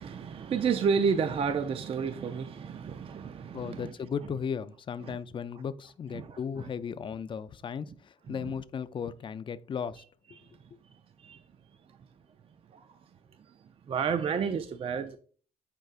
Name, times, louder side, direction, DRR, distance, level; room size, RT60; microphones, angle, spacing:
voice 1, 0.0-3.9 5.0-5.2 6.1-6.7 7.9-8.0 8.3-8.5 10.4-11.4 11.9-12.1 12.7-13.0 13.5-15.2, right 6 dB, 35° right, 0.4 m, -32 dB
voice 2, 3.5-10.0 10.3-10.4, left 7 dB, 30° left, 0.4 m, -36 dB
9.0 x 4.5 x 2.4 m
cardioid pair, 110°, 17 cm